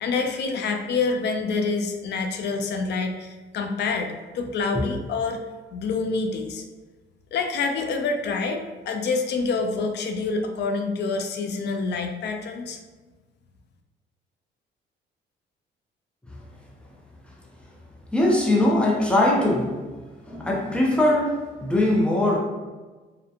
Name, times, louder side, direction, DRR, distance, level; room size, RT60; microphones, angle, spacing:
voice 1, 0.0-5.4 5.7-6.6 7.3-12.8, left 4 dB, 60° left, 4 dB, 0.4 m, -27 dB
voice 2, 18.1-19.8 20.3-22.4, left 1 dB, 5° left, -3 dB, 0.6 m, -21 dB
2.7 x 2.2 x 2.4 m, 1.3 s
cardioid pair, 90°, 20 cm